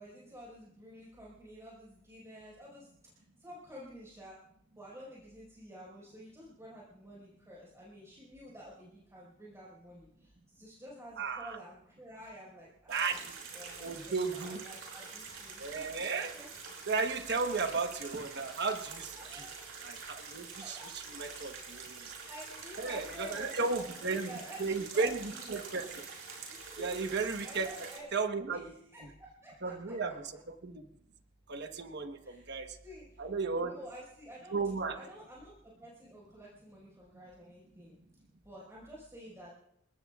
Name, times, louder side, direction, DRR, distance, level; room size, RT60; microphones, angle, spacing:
voice 1, 0.0-4.4 4.7-13.2 13.5-15.9 16.3-16.5 19.1-19.5 20.6-20.9 22.3-25.5 26.5-27.1 27.4-28.1 28.5-29.9 30.3-30.4 32.2-32.5 32.8-33.3 33.6-34.5 34.9-38.0 38.4-39.5, equal, 15° right, -6 dB, 5.0 m, -50 dB
voice 2, 11.2-11.6 12.9-13.2 13.8-14.6 15.6-16.4 16.9-19.5 19.8-20.8 21.2-22.1 22.8-24.3 24.6-26.0 26.8-27.7 28.1-28.6 29.6-30.1 30.5-30.8 31.5-32.8 33.2-33.7 34.5-35.0, right 4 dB, 55° right, 6 dB, 1.2 m, -34 dB
sound 1, 12.9-28.0, right 5 dB, 70° right, 6.2 m, -46 dB
29.0 x 18.0 x 2.4 m, 0.74 s
head